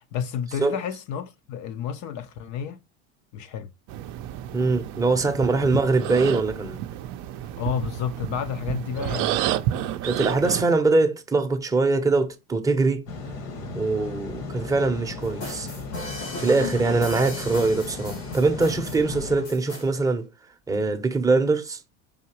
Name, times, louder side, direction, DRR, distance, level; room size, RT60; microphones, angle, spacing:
voice 1, 0.0-2.8 3.3-3.7 7.6-9.9, left 8 dB, 45° left, 0.6 m, -31 dB
sound 1, 3.9-10.6, right 12 dB, 50° right, 0.5 m, -30 dB
voice 2, 4.5-6.8 10.0-13.0 13.7-15.7 16.4-20.3 20.7-21.8, right 3 dB, 10° right, 0.7 m, -22 dB
sound 2, 13.1-19.4, left 3 dB, 60° left, 1.3 m, -36 dB
sound 3, 15.2-19.9, left 2 dB, 85° left, 2.3 m, -36 dB
4.9 x 2.7 x 2.9 m
hypercardioid pair, 85°, 40 cm